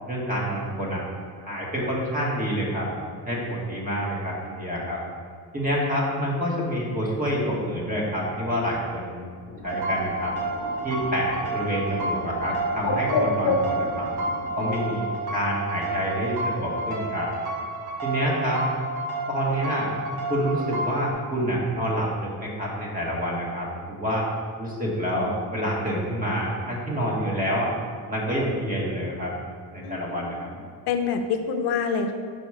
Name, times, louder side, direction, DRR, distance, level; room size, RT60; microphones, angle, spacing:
voice 1, 0.1-1.0 1.4-2.9 3.2-5.0 5.5-9.2 9.6-10.3 10.8-14.1 14.6-17.3 18.0-18.6 19.3-19.9 20.3-24.3 24.6-27.7 28.1-29.3 29.7-30.5, equal, 20° right, -3 dB, 1.5 m, -27 dB
Bird, 9.5-15.0, left 2 dB, 60° left, 1.1 m, -31 dB
sound 1, 9.6-21.1, right 2 dB, 75° right, 1.3 m, -30 dB
voice 2, 29.8-30.6 30.9-32.1, left 6 dB, 80° left, 6 dB, 0.7 m, -27 dB
5.3 x 5.1 x 4.9 m, 2.1 s
cardioid pair, 130°, 38 cm